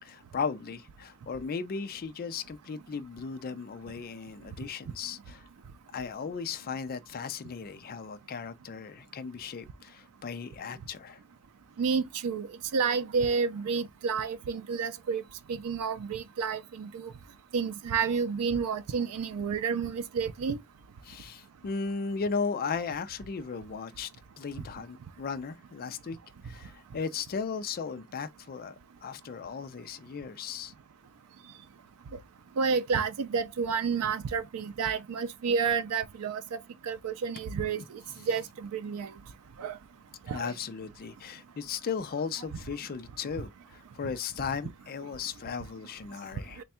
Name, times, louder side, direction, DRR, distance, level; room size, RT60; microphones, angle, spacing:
voice 1, 0.0-5.4 5.9-11.2 21.0-24.1 24.4-26.2 26.4-30.7 38.2-38.3 40.3-46.6, left 5 dB, 40° left, 0.4 m, -36 dB
voice 2, 11.8-12.5 12.7-15.2 15.5-17.1 17.5-20.6 32.6-36.6 36.8-37.8 38.3-39.1 39.6-39.8 40.3-40.5, right 5 dB, 80° right, 0.4 m, -30 dB
3.4 x 2.2 x 4.1 m
head